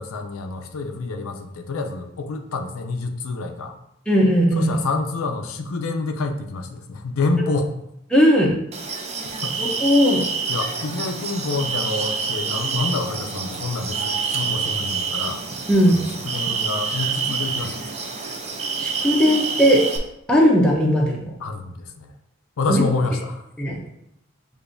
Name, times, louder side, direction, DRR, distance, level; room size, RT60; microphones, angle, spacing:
voice 1, 0.0-3.8 4.5-7.7 9.4-9.6 10.5-15.4 15.9-17.8 21.4-22.1 22.6-23.4, left 3 dB, 90° left, 5 dB, 0.5 m, -27 dB
voice 2, 4.1-4.7 8.1-8.5 9.6-10.2 15.7-16.0 18.8-19.9 20.3-21.4 22.7-22.8 23.6-23.8, equal, 5° left, -3 dB, 0.7 m, -17 dB
sound 1, 8.7-20.0, right 5 dB, 30° right, 0.5 m, -27 dB
6.7 x 2.6 x 2.6 m, 0.78 s
head